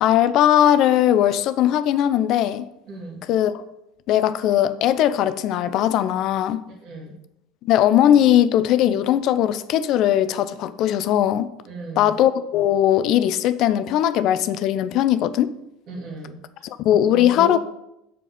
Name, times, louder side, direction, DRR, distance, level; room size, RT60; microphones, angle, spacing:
voice 1, 0.0-2.7 3.3-3.6 4.1-6.6 7.6-11.5 12.0-15.5 16.6-17.6, left 11 dB, 55° left, 13 dB, 0.4 m, -19 dB
voice 2, 2.9-3.2 6.8-7.1 11.7-12.1 15.9-16.4 17.1-17.6, right 2 dB, 50° right, -1 dB, 2.7 m, -35 dB
5.9 x 4.9 x 6.6 m, 0.84 s
hypercardioid pair, 75°, 0 cm